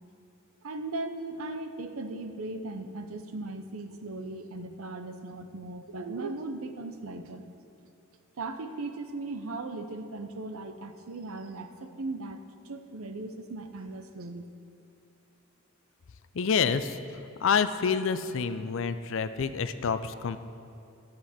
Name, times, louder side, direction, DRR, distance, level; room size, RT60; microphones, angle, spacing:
voice 1, 0.6-7.4 8.4-12.4 12.6-14.5, right 2 dB, 90° right, 8 dB, 0.7 m, -38 dB
voice 2, 16.3-17.0 17.4-20.4, left 6 dB, 65° left, 12 dB, 0.5 m, -27 dB
13.5 x 7.7 x 4.3 m, 2.6 s
head